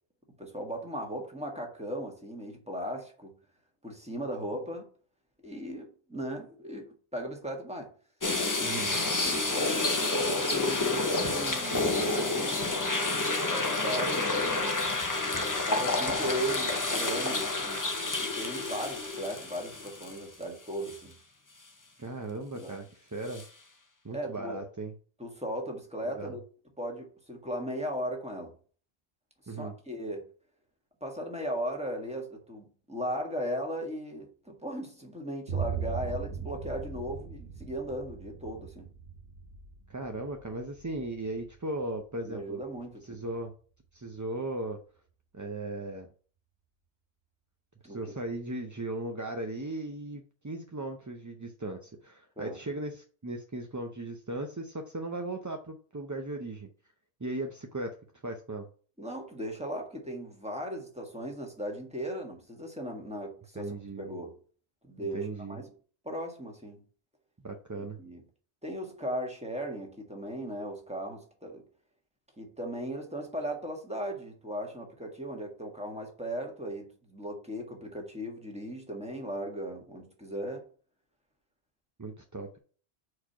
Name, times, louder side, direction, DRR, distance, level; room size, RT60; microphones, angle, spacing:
voice 1, 0.4-3.4 3.8-4.9 5.4-7.9 8.6-8.8 9.1-12.7 13.5-14.6 15.7-17.9 18.2-21.1 22.5-22.8 24.1-24.6 25.2-26.4 26.8-28.5 29.5-30.3 31.0-38.9 42.2-43.2 47.8-48.0 52.4-52.6 59.0-64.4 64.8-65.7 66.0-66.8 67.7-68.2 68.6-71.6 72.4-80.7, equal, 5° right, 1.5 m, -37 dB
sound 1, 8.2-20.4 20.9-21.0 23.3-23.4, left 2 dB, 20° left, 0.6 m, -29 dB
voice 2, 8.6-9.0 22.0-23.4 24.0-24.9 26.1-26.3 29.5-29.7 39.9-42.6 43.0-43.5 43.9-44.8 45.3-46.1 47.8-56.7 57.2-58.0 58.2-58.7 63.6-64.1 65.0-65.6 67.4-68.0 82.0-82.6, right 2 dB, 25° right, 0.4 m, -37 dB
Boom, 35.5-43.3, right 6 dB, 75° right, 1.5 m, -39 dB
4.8 x 4.3 x 5.5 m
omnidirectional pair, 1.1 m